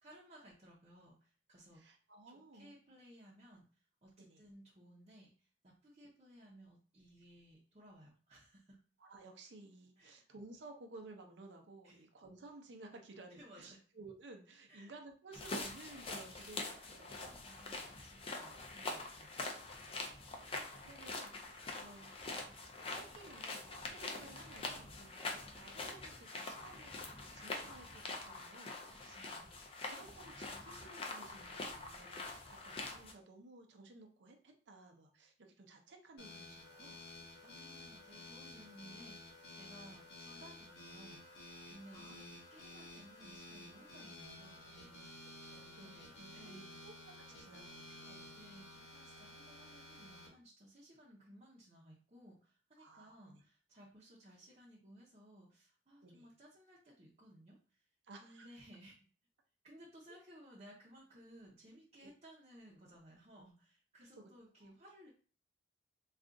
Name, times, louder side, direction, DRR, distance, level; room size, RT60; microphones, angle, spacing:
voice 1, 0.0-2.0 2.3-8.8 10.0-10.3 11.8-12.0 13.3-13.8 14.7-14.9 17.1-19.4 28.8-29.5 37.4-39.2 39.5-45.3 45.7-46.8 48.3-57.8 58.2-59.0 59.6-65.1, right 1 dB, 40° right, -6 dB, 0.7 m, -59 dB
voice 2, 1.7-2.7 4.2-4.4 9.0-17.3 18.5-18.7 20.3-22.1 22.9-29.5 29.8-37.0 39.8-40.0 41.9-42.2 45.5-46.1 46.4-46.9 47.3-48.3 52.8-53.4 56.0-56.3 58.0-58.6 60.1-60.2 62.0-62.1 64.1-64.3 64.6-64.7, right 2 dB, 80° right, 4 dB, 0.6 m, -56 dB
sound 1, 15.3-33.1, left 3 dB, 35° left, 0.5 m, -45 dB
sound 2, 36.2-50.3, left 1 dB, 80° left, 1.0 m, -53 dB
2.4 x 2.4 x 3.8 m, 0.40 s
head